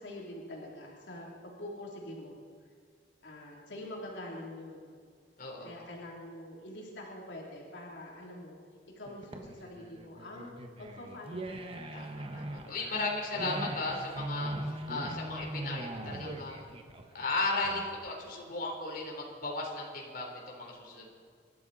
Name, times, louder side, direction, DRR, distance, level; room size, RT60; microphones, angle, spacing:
voice 1, 0.0-2.4 3.2-4.9 5.6-8.6 8.9-12.0 12.6-13.0, left 1 dB, 90° left, -3 dB, 3.2 m, -45 dB
voice 2, 5.4-5.7 11.9-16.7 17.1-21.1, left 3 dB, 55° left, -1 dB, 3.6 m, -36 dB
sound 1, 9.1-18.1, right 1 dB, 30° right, 1.4 m, -40 dB
27.0 x 12.5 x 4.2 m, 2.1 s
head